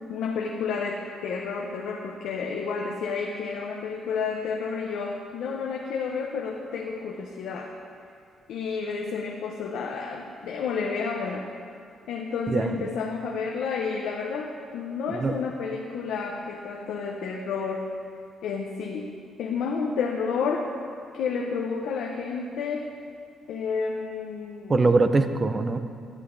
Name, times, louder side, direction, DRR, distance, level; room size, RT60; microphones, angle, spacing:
voice 1, 0.1-7.7 8.5-11.5 12.1-17.9 18.4-20.6 21.1-22.8 23.5-24.8, left 5 dB, 80° left, 0 dB, 0.6 m, -30 dB
voice 2, 12.5-12.9 15.1-15.3 24.7-25.8, right 3 dB, 30° right, 9 dB, 0.4 m, -22 dB
11.0 x 7.9 x 2.6 m, 2.3 s
cardioid pair, 90°, 0 cm